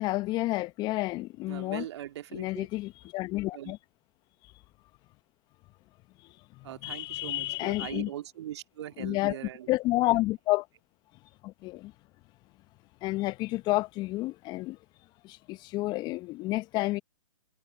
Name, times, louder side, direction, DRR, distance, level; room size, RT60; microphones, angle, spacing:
voice 1, 0.0-1.8 2.3-3.8 6.2-8.1 9.0-9.4 9.7-10.6 11.4-11.9 13.0-14.8 15.2-17.0, left 19 dB, 25° left, 1.0 m, -30 dB
voice 2, 1.5-2.7 3.5-3.7 6.6-9.7 10.1-10.2, right 12 dB, 50° right, 2.1 m, -41 dB
figure-of-eight pair, 125°, 18 cm